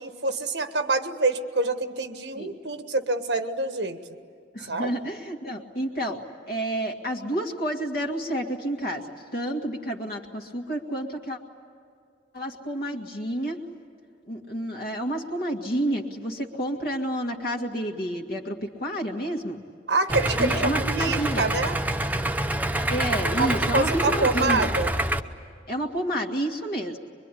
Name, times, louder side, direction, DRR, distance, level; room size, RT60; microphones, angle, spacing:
voice 1, 0.0-4.0 4.7-5.0 19.9-21.8 23.4-24.9, right 3 dB, 80° right, 8 dB, 1.5 m, -26 dB
voice 2, 4.5-6.2 6.5-11.4 12.3-13.6 14.3-19.6 20.4-21.5 22.9-24.7 25.7-27.0, right 1 dB, 60° left, 1 dB, 2.0 m, -30 dB
Idling, 20.1-25.2, right 1 dB, 10° right, 0.8 m, -26 dB
23.5 x 23.5 x 10.0 m, 2.3 s
head